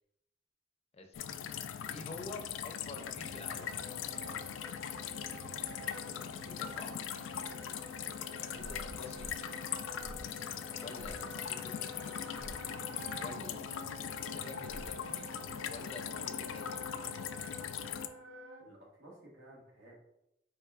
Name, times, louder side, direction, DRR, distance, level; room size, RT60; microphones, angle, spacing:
voice 1, 0.9-1.3 1.9-3.7 6.4-7.0 8.4-9.3 10.8-12.2 13.2-13.6 14.1-15.3 15.6-16.8, left 3 dB, 35° left, 4 dB, 0.5 m, -48 dB
sound 1, 1.1-18.1, left 9 dB, 90° left, 0.3 m, -40 dB
Wind instrument woodwind instrument, 3.2-18.7, equal, 70° right, 0.6 m, -49 dB
sound 2, 8.6-9.4 10.0-10.4 11.0-11.3 12.4-12.7 14.7-15.1, equal, 25° right, 0.6 m, -48 dB
voice 2, 18.6-20.0, right 1 dB, 85° right, -3 dB, 1.5 m, -56 dB
5.3 x 4.0 x 2.4 m, 0.84 s
head